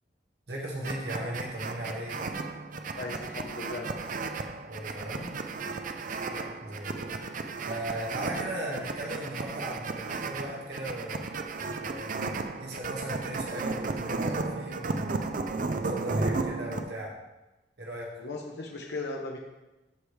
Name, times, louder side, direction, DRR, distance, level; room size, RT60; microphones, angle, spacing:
voice 1, 0.5-2.3 4.7-5.3 6.6-7.2 7.6-11.2 11.7-15.2 15.5-17.1 17.8-18.1, right 1 dB, 65° right, -2 dB, 1.6 m, -37 dB
sound 1, 0.8-16.9, right 3 dB, 50° right, 0.5 m, -34 dB
voice 2, 2.9-3.9 6.3-6.6 18.2-19.4, left 2 dB, 70° left, 0 dB, 1.0 m, -37 dB
14.0 x 4.9 x 3.2 m, 1.0 s
head